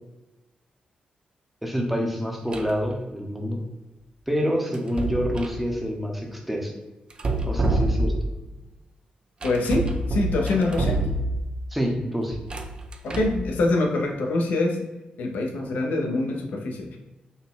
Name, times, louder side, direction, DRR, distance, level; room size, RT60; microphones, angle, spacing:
voice 1, 1.6-3.6 4.3-6.7 7.4-8.1 11.7-12.4, equal, 5° right, 0 dB, 0.7 m, -27 dB
sound 1, 2.5-2.8 4.7-5.6 7.1-8.4 9.4-11.6 12.3-13.5, right 2 dB, 35° right, 0.4 m, -27 dB
voice 2, 9.4-11.0 13.0-14.8 15.2-17.0, left 2 dB, 85° left, 1 dB, 0.7 m, -25 dB
4.1 x 2.2 x 3.8 m, 1.1 s
wide cardioid pair, 120°, 3 cm